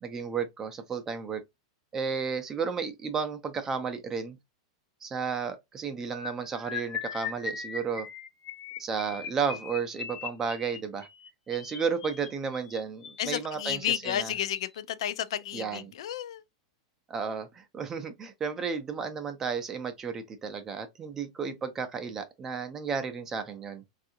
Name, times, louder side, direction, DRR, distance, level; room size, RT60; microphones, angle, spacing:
voice 1, 0.0-1.4 1.9-4.4 5.0-8.1 8.8-11.1 11.5-14.3 15.5-15.8 17.1-23.8, right 6 dB, 15° right, 0.4 m, -33 dB
sound 1, 6.1-13.3 14.1-14.3 14.6-14.8 15.1-15.3, left 6 dB, 25° left, 0.7 m, -39 dB
voice 2, 13.2-16.4, left 11 dB, 70° left, 0.3 m, -32 dB
3.5 x 2.4 x 2.7 m
supercardioid pair, 170°, 3 cm